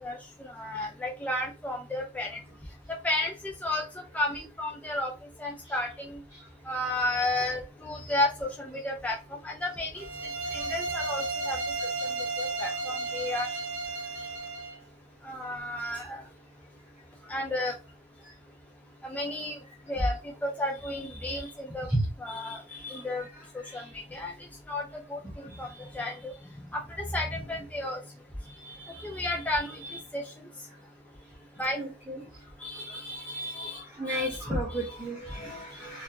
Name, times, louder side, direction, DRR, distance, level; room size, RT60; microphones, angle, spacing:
voice 1, 0.0-2.4 3.0-3.8 4.1-5.1 5.4-6.2 6.7-10.0 10.5-11.6 12.4-13.6 15.2-16.2 17.3-17.7 19.0-19.6 19.9-20.1 20.4-21.9 22.2-23.2 23.7-24.3 24.7-24.8 25.1-26.3 26.7-28.0 28.6-30.3 31.6-31.8 32.6-34.4 34.7-35.0, left 1 dB, 5° left, 1 dB, 0.3 m, -33 dB
sound 1, 10.0-14.8, right 3 dB, 75° right, 0.8 m, -33 dB
voice 2, 23.3-23.9 25.2-25.5 31.8-32.2 32.9-33.0 33.5-36.0, right 1 dB, 10° right, -7 dB, 0.9 m, -34 dB
4.1 x 2.7 x 2.8 m, 0.30 s
head